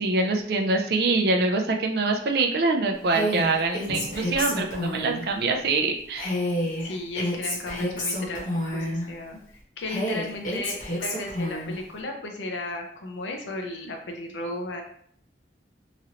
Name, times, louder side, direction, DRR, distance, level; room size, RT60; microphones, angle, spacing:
voice 1, 0.0-6.3, right 3 dB, 60° right, 3 dB, 0.4 m, -24 dB
Female speech woman speaking, 3.1-5.2 6.1-9.0 9.9-11.8, equal, 45° left, 1.0 m, -29 dB
Drum, 3.9-5.6, left 1 dB, 25° right, 1.2 m, -41 dB
voice 2, 6.8-14.8, left 2 dB, 85° left, 3 dB, 0.6 m, -35 dB
3.0 x 2.5 x 2.8 m, 0.64 s
head